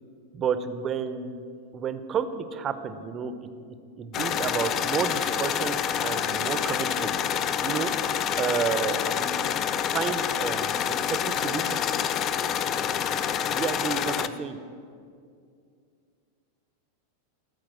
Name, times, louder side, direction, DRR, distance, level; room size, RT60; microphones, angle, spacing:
voice 1, 0.3-1.4 1.7-3.5 4.0-7.1 7.6-7.9 8.4-9.4 9.7-11.8 13.5-14.6, right 7 dB, 25° right, 11 dB, 0.6 m, -31 dB
sound 1, 4.1-14.3, left 8 dB, 30° left, 0.4 m, -27 dB
13.0 x 4.7 x 7.5 m, 2.3 s
figure-of-eight pair, 90°, 0 cm